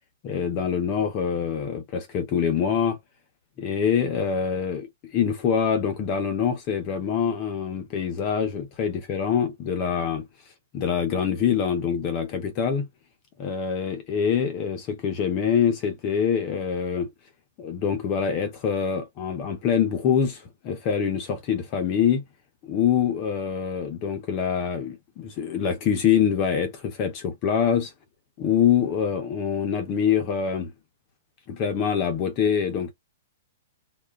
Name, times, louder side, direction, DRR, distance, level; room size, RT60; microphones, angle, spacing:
voice 1, 0.2-3.0 3.6-10.2 10.7-12.9 13.4-17.1 17.6-22.2 22.6-27.9 28.4-30.7 31.5-32.9, left 7 dB, 30° left, 0.6 m, -25 dB
2.3 x 2.2 x 3.3 m
hypercardioid pair, 155°, 0 cm